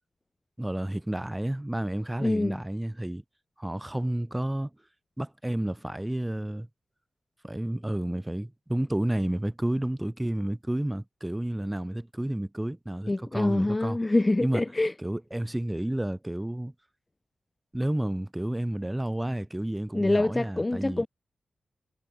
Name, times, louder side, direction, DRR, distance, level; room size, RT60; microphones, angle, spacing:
voice 1, 0.6-3.2 3.6-4.7 5.2-6.7 7.4-14.0 14.4-14.6 15.0-16.7 17.7-21.0, right 1 dB, 15° right, 1.8 m, -31 dB
voice 2, 2.2-2.6 13.1-14.9 19.9-21.1, left 2 dB, 25° left, 0.5 m, -25 dB
supercardioid pair, 40°, 0 cm